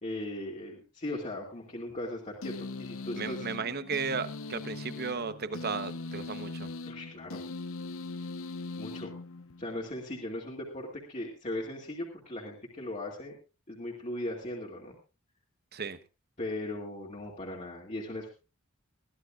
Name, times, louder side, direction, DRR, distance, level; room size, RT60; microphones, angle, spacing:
voice 1, 0.0-3.5 6.9-7.4 8.8-9.1 9.6-13.3 13.7-15.0 16.4-18.3, left 1 dB, 35° left, 2.3 m, -38 dB
sound 1, 2.4-9.8, left 3 dB, 70° left, 0.8 m, -40 dB
voice 2, 3.2-6.7 15.7-16.0, right 5 dB, 50° right, 1.0 m, -35 dB
21.5 x 14.5 x 2.4 m
head